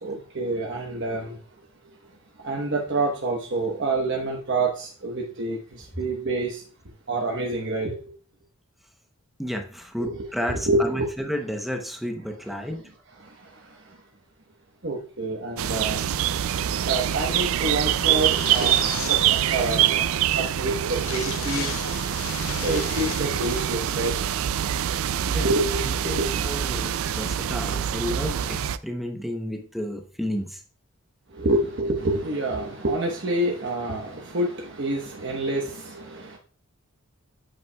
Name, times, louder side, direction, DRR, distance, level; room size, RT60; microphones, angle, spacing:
voice 1, 0.0-1.3 2.4-6.6 7.1-8.0 10.0-11.1 14.8-16.0 16.9-20.0 20.4-21.8 22.6-24.1 25.4-26.3 31.4-36.4, right 2 dB, 55° right, -1 dB, 1.1 m, -27 dB
voice 2, 9.4-12.8 25.3-25.5 25.8-30.6, equal, ahead, 4 dB, 0.7 m, -32 dB
sound 1, 15.6-28.8, right 10 dB, 70° right, 0.3 m, -25 dB
sound 2, 18.0-19.9 20.2-20.3 20.5-20.6 20.9-23.6, left 8 dB, 70° left, 0.6 m, -36 dB
8.3 x 7.7 x 2.3 m, 0.40 s
head